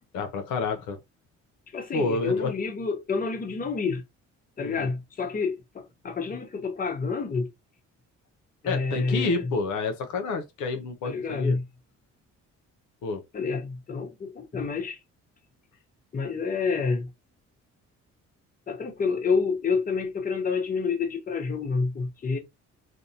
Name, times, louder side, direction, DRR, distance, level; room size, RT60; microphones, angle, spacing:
voice 1, 0.1-1.0 1.9-2.5 4.6-4.9 8.6-11.6 13.0-13.2, left 4 dB, 80° left, 0.6 m, -29 dB
voice 2, 1.7-4.0 4.6-7.5 8.6-9.5 11.0-11.6 13.3-15.0 16.1-17.1 18.7-22.4, left 4 dB, 30° left, 0.7 m, -28 dB
2.5 x 2.0 x 2.7 m
cardioid pair, 90°, 30 cm